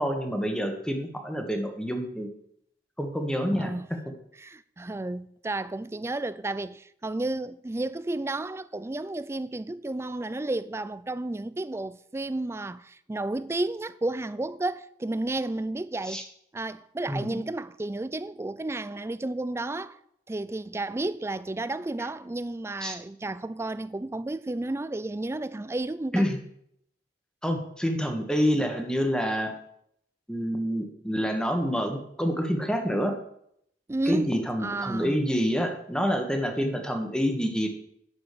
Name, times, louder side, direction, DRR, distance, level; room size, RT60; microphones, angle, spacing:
voice 1, 0.0-2.3 3.0-3.7 16.0-16.2 17.1-17.4 22.8-23.0 26.1-26.4 27.4-29.5 30.3-33.1 34.1-37.7, equal, 5° left, 1.3 m, -27 dB
voice 2, 4.4-16.2 16.5-20.0 20.3-26.3 33.9-35.2, right 2 dB, 15° right, 0.3 m, -32 dB
9.8 x 6.1 x 6.7 m
head